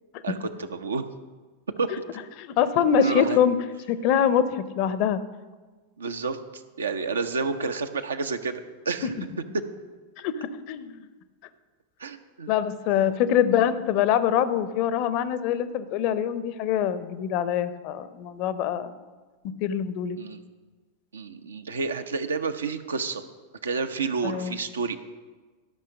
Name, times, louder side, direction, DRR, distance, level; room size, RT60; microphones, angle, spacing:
voice 1, 0.2-1.0 1.8-2.0 3.0-3.4 6.0-9.1 9.5-9.6 12.0-12.5 20.2-20.4 21.1-23.2 23.6-25.0, right 4 dB, 70° right, 8 dB, 0.7 m, -30 dB
voice 2, 2.4-3.6 3.9-5.2 10.2-11.0 12.5-18.9 19.4-20.2 24.2-24.6, left 9 dB, 45° left, 13 dB, 0.6 m, -24 dB
13.0 x 5.7 x 6.4 m, 1.3 s
figure-of-eight pair, 90°, 0 cm